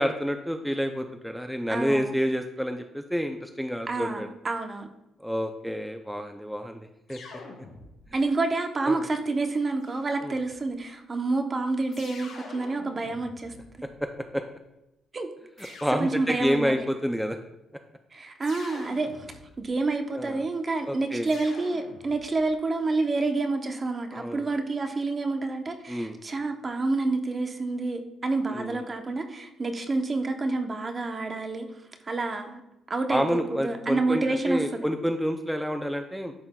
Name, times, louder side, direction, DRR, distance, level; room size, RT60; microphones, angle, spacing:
voice 1, 0.0-4.3 5.2-7.2 8.9-9.0 10.2-10.4 13.8-14.4 15.8-17.4 20.1-20.4 20.9-21.3 24.1-24.4 25.9-26.2 28.5-28.8 33.1-36.3, equal, ahead, 6 dB, 0.4 m, -29 dB
voice 2, 1.7-2.1 3.9-4.9 8.1-13.5 15.1-15.3 15.6-16.8 18.1-19.3 19.6-31.7 32.1-32.6 32.9-34.8, right 3 dB, 35° right, 6 dB, 0.7 m, -28 dB
sound 1, 7.1-8.3 9.8-10.7 11.9-14.2 15.6-16.7 18.4-19.8 21.3-22.5, left 3 dB, 80° left, 1.5 m, -47 dB
11.0 x 3.8 x 2.2 m, 0.91 s
cardioid pair, 90°, 0 cm